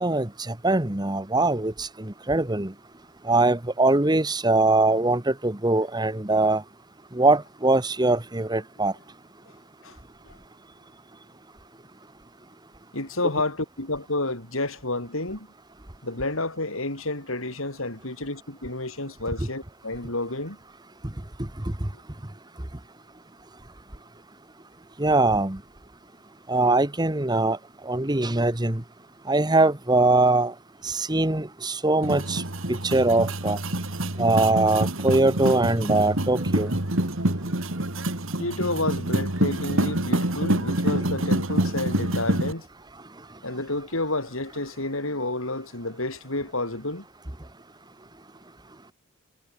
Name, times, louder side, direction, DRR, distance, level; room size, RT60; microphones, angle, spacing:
voice 1, 0.0-2.7 3.3-6.6 7.1-8.9 25.0-25.6 26.5-27.6 27.9-28.8 29.3-30.5 30.8-32.4 32.7-33.6 34.2-36.7, right 2 dB, 20° right, 1.3 m, -22 dB
voice 2, 12.9-15.5 16.0-20.6 38.4-42.7 43.4-47.1, left 2 dB, 65° left, 5.4 m, -30 dB
sound 1, 32.0-42.5, right 1 dB, 60° right, 3.1 m, -26 dB
head